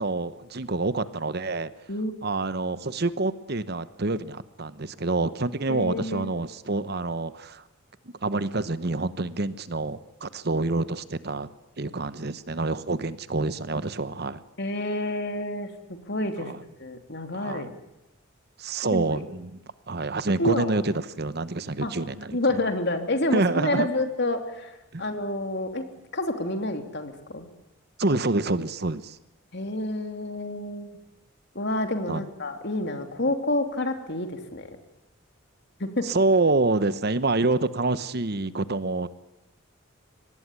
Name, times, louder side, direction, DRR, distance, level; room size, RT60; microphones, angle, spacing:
voice 1, 0.0-1.7 2.2-7.6 8.2-11.5 11.8-14.4 16.4-16.6 17.3-17.7 18.6-19.6 19.9-22.4 23.3-23.9 24.9-25.0 28.0-29.2 32.1-32.2 36.0-39.1, right 2 dB, 50° right, 14 dB, 1.0 m, -27 dB
voice 2, 5.7-6.3 14.6-17.7 18.9-19.2 20.4-20.7 21.8-21.9 22.3-25.9 26.1-27.5 29.5-30.9 31.5-34.7 35.8-36.0, left 1 dB, 55° left, 6 dB, 3.1 m, -29 dB
24.5 x 19.5 x 9.9 m, 0.93 s
head